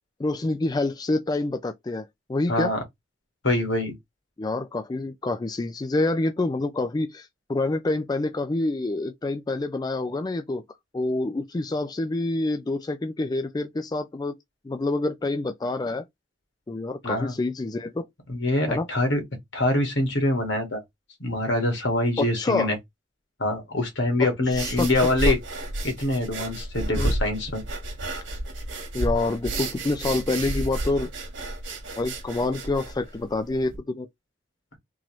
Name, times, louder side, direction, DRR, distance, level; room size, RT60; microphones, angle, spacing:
voice 1, 0.2-2.7 4.4-10.6 10.9-14.3 14.6-16.0 16.7-18.1 18.7-18.9 22.2-22.7 24.2-24.9 25.3-25.4 27.0-27.1 28.9-31.1 32.0-34.1, left 2 dB, 20° left, 0.3 m, -27 dB
voice 2, 2.5-2.8 3.4-3.9 17.0-17.3 18.3-19.2 19.5-20.8 21.2-22.8 23.4-25.4 25.8-27.6, left 1 dB, 75° left, 1.8 m, -24 dB
sound 1, 24.5-33.8, right 1 dB, 80° right, 1.4 m, -31 dB
3.8 x 3.0 x 3.1 m
head